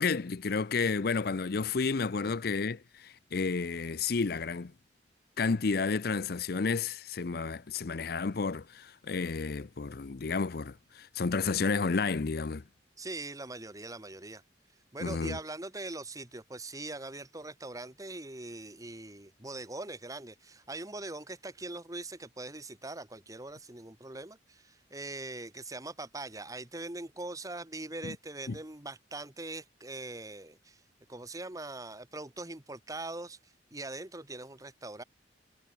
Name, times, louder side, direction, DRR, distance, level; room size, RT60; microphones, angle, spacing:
voice 1, 0.0-4.7 5.4-12.6 15.0-15.4 28.0-28.1 28.5-28.6, left 4 dB, 55° left, 0.6 m, -31 dB
voice 2, 13.0-14.4 14.9-30.8 31.1-35.0, right 2 dB, 20° right, 1.6 m, -42 dB
head